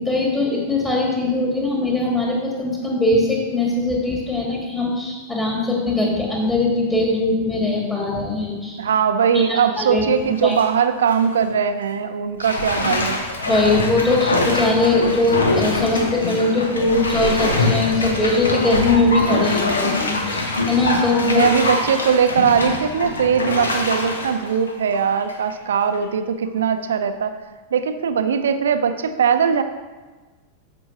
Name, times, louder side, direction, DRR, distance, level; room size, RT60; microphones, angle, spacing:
voice 1, 0.0-8.8 9.3-10.6 13.4-21.5, left 2 dB, 15° left, -2 dB, 1.9 m, -21 dB
voice 2, 8.8-13.2 21.3-27.4 27.7-29.6, right 7 dB, 65° right, 9 dB, 0.6 m, -20 dB
Bathtub (filling or washing), 10.2-10.6 11.1-11.2 12.4-25.5 25.9-26.0, left 2 dB, 75° left, 1.0 m, -24 dB
13.5 x 5.4 x 3.0 m, 1.3 s
figure-of-eight pair, 90°, 0 cm